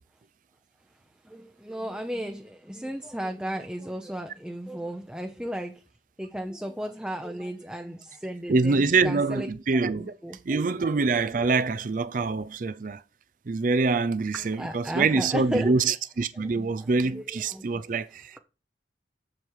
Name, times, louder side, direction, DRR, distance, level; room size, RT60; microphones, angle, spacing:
voice 1, 1.2-5.8 6.2-9.5 10.0-10.7 11.2-11.3 14.3-15.9 16.4-17.8, equal, 5° right, 0.7 m, -35 dB
voice 2, 8.5-10.1 10.5-13.0 13.5-18.4, right 4 dB, 45° right, 0.4 m, -25 dB
7.8 x 7.1 x 4.7 m
head